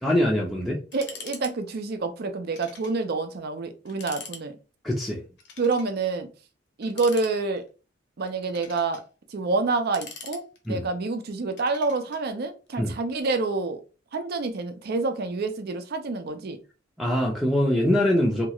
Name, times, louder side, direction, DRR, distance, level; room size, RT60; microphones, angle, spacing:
voice 1, 0.0-0.8 4.8-5.2 10.7-10.8 12.8-12.9 17.0-18.5, equal, ahead, -2 dB, 0.5 m, -23 dB
sound 1, 0.9-1.5 1.8-1.9 2.5-3.0 3.3-3.4 3.9-4.4 5.4-5.9 6.8-7.7 8.3-9.0 9.7-10.8 11.6-12.2, left 5 dB, 65° left, 0.6 m, -43 dB
voice 2, 0.9-4.6 5.6-6.3 6.8-7.6 8.2-9.0 9.3-13.8 14.1-16.6, right 3 dB, 55° right, 7 dB, 0.5 m, -28 dB
2.9 x 2.3 x 2.9 m, 0.34 s
head